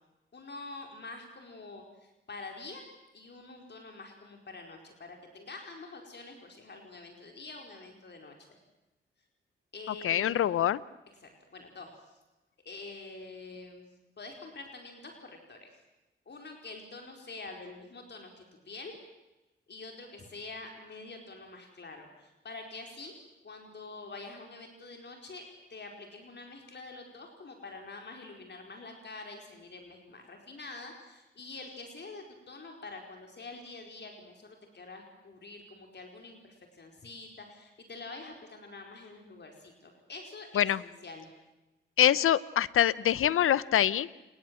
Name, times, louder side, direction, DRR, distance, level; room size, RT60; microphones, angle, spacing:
voice 1, 0.3-2.8 3.1-8.6 9.7-10.4 11.2-12.2 12.6-13.8 14.2-15.7 16.2-18.9 19.7-23.1 23.4-25.4 25.7-41.3, left 3 dB, 55° left, 3 dB, 4.8 m, -46 dB
voice 2, 10.0-10.8 40.5-40.8 42.0-44.2, left 11 dB, 85° left, 19 dB, 0.8 m, -25 dB
29.5 x 20.5 x 7.8 m, 1.0 s
cardioid pair, 60°, 21 cm